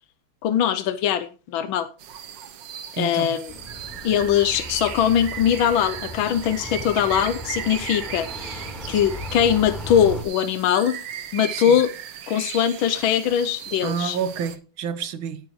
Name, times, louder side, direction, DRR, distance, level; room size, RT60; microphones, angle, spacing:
voice 1, 0.4-1.9 3.0-3.5 4.0-11.0 11.3-11.9 12.3-14.2, left 9 dB, 85° left, 1.5 m, -21 dB
sound 1, 2.0-14.6, right 9 dB, 70° right, 1.6 m, -37 dB
voice 2, 3.0-3.3 11.5-11.6 13.8-15.4, right 7 dB, 90° right, 1.9 m, -28 dB
sound 2, 3.5-10.2, left 1 dB, ahead, 3.6 m, -37 dB
17.5 x 9.3 x 3.1 m
omnidirectional pair, 2.1 m